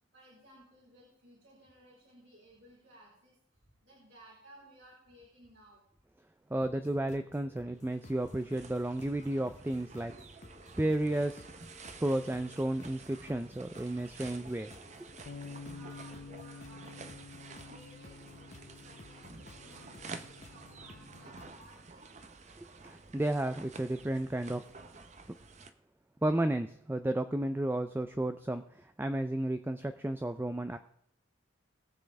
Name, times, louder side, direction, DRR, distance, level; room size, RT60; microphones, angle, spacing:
voice 1, 0.1-3.4 3.8-5.8 15.7-17.2 17.6-18.5 18.8-22.1, right 1 dB, 70° right, -5 dB, 4.1 m, -58 dB
voice 2, 6.5-10.1 10.8-11.5 12.0-14.7 22.6-24.6 26.2-30.8, right 1 dB, 10° right, 9 dB, 0.4 m, -32 dB
sound 1, 6.6-21.8, left 2 dB, 35° left, 0.9 m, -56 dB
sound 2, 7.7-25.7, right 4 dB, 35° right, 0.7 m, -51 dB
Bass guitar, 15.3-21.5, left 4 dB, 65° left, 0.5 m, -50 dB
21.5 x 7.5 x 3.4 m, 0.74 s
head